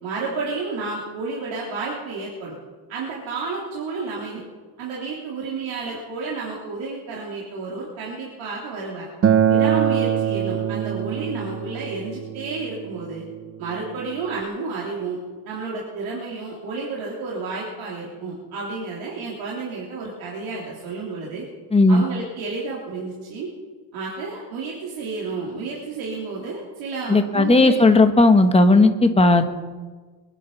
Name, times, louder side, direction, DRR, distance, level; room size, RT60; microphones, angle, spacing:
voice 1, 0.0-2.5 2.9-4.4 4.8-9.1 9.5-13.2 13.6-21.5 21.9-23.5 23.9-27.8, right 4 dB, 70° right, -4 dB, 3.5 m, -31 dB
Acoustic guitar, 9.2-14.4, right 8 dB, 30° right, 0.7 m, -24 dB
voice 2, 21.7-22.0 27.1-29.5, left 2 dB, 10° left, 7 dB, 1.0 m, -15 dB
23.0 x 9.9 x 5.6 m, 1.4 s
cardioid pair, 155°, 49 cm